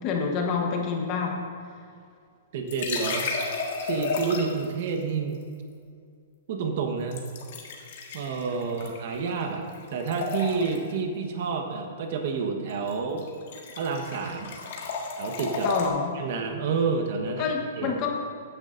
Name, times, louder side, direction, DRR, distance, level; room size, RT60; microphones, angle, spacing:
voice 1, 0.0-1.5 15.6-16.2 17.3-18.2, left 5 dB, 25° left, 1 dB, 1.1 m, -28 dB
voice 2, 2.5-3.3 3.8-5.4 6.5-7.2 8.1-13.3 13.7-14.5 15.2-15.7 16.1-17.5 17.8-18.0, right 5 dB, 45° right, 4 dB, 1.2 m, -29 dB
sound 1, 2.7-4.7 7.1-9.5 9.7-10.9 12.7-12.9 13.2-15.9, left 4 dB, 50° left, 1.5 m, -32 dB
14.0 x 9.9 x 2.6 m, 2.3 s
hypercardioid pair, 175°, 0 cm